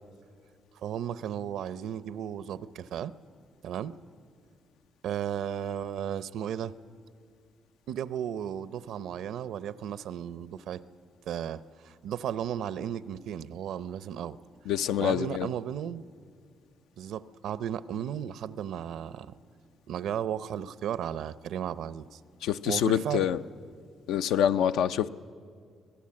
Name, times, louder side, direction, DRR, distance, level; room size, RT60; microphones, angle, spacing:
voice 1, 0.8-3.1 3.6-4.0 5.0-6.7 7.9-10.8 11.3-14.4 15.0-16.0 17.0-19.4 19.9-23.3, right 9 dB, 80° right, 16 dB, 0.7 m, -35 dB
voice 2, 14.7-15.5 22.4-23.4 24.1-25.1, left 9 dB, 90° left, 10 dB, 0.6 m, -26 dB
25.5 x 17.5 x 8.7 m, 2.1 s
cardioid pair, 90°, 0 cm